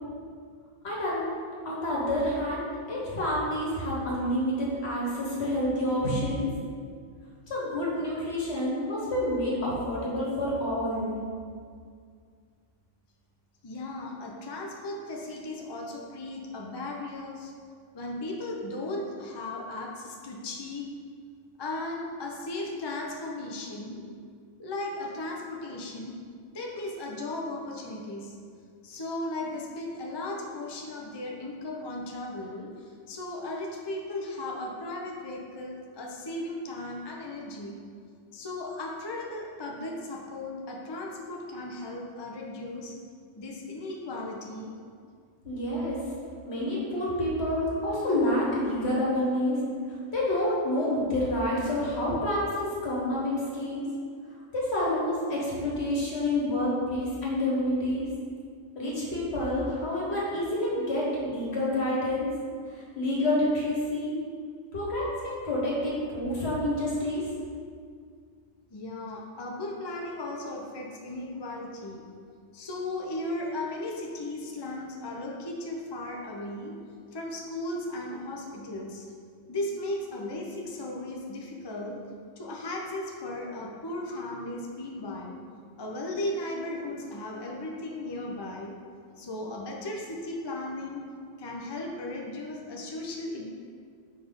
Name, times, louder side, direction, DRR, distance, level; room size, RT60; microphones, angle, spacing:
voice 1, 0.8-1.3 1.6-6.5 7.5-11.1 45.4-46.0 46.4-49.6 49.9-53.8 54.5-58.1 58.7-62.3 62.7-64.2 64.7-67.2, left 1 dB, 60° left, -6 dB, 1.7 m, -28 dB
voice 2, 13.6-17.5 17.9-20.9 21.6-24.1 24.6-26.2 26.5-28.4 28.8-37.8 38.3-42.9 43.3-44.7 68.7-72.1 72.5-76.8 77.1-79.1 79.5-82.0 82.4-85.4 85.8-88.8 89.2-91.1 91.4-93.5, left 2 dB, 35° left, -1 dB, 0.4 m, -36 dB
5.0 x 4.1 x 5.3 m, 2.1 s
omnidirectional pair, 1.3 m